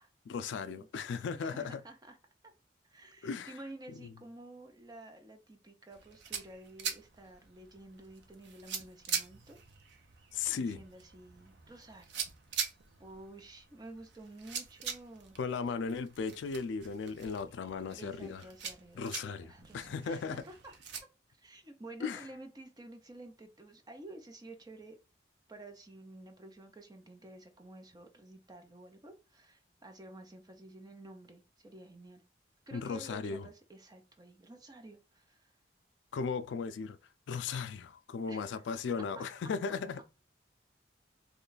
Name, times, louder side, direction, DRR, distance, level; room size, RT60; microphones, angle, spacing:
voice 1, 0.3-1.8 3.2-3.5 3.9-4.1 10.3-10.8 15.4-18.4 18.9-20.4 22.0-22.3 32.7-33.5 36.1-37.0 37.3-40.0, left 5 dB, 80° left, 0.3 m, -36 dB
voice 2, 1.3-2.2 2.8-9.6 10.5-12.1 12.5-12.7 13.0-15.4 18.0-20.7 21.4-25.0 25.5-32.2 32.7-35.5 38.3-38.6 39.2-39.3, right 2 dB, 20° right, 0.5 m, -51 dB
sound 1, 5.9-21.0, right 7 dB, 70° right, 0.6 m, -43 dB
3.1 x 2.3 x 3.9 m
head